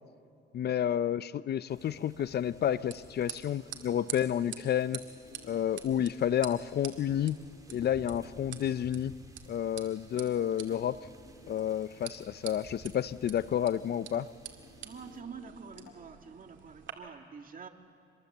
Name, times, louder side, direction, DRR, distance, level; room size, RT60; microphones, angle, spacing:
voice 1, 0.5-5.0 5.5-7.4 7.7-9.1 9.5-11.0 11.5-14.3, left 10 dB, 55° left, 17 dB, 0.6 m, -30 dB
sound 1, 1.7-15.2, right 2 dB, 20° right, 3.0 m, -56 dB
sound 2, 2.1-16.9, right 9 dB, 70° right, 2.5 m, -48 dB
sound 3, 2.7-3.1 4.2-5.9 7.1-9.0 10.5-12.0 13.7-16.3, left 2 dB, 85° left, 6.7 m, -56 dB
voice 2, 14.8-17.7, right 6 dB, 45° right, 5 dB, 2.0 m, -47 dB
25.5 x 21.5 x 8.0 m, 2.5 s
cardioid pair, 90°, 20 cm